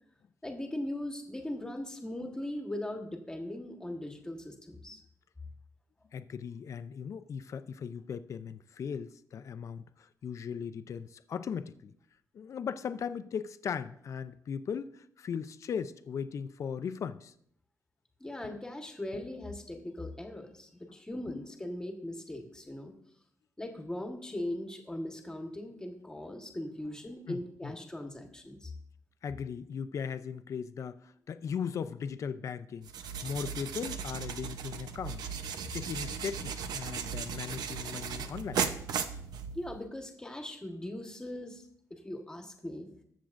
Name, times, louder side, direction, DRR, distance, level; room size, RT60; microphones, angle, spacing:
voice 1, 0.4-5.0 18.2-22.9 23.6-28.7 39.5-41.6 41.9-42.9, left 1 dB, 10° left, 1.3 m, -39 dB
voice 2, 6.1-11.9 12.3-17.3 18.4-18.6 19.1-19.3 21.3-21.4 27.3-27.7 29.2-35.3 35.7-38.6, left 7 dB, 50° left, 0.5 m, -38 dB
sound 1, 32.8-39.8, right 7 dB, 90° right, 0.7 m, -36 dB
20.0 x 7.4 x 2.5 m
wide cardioid pair, 155°, 7 cm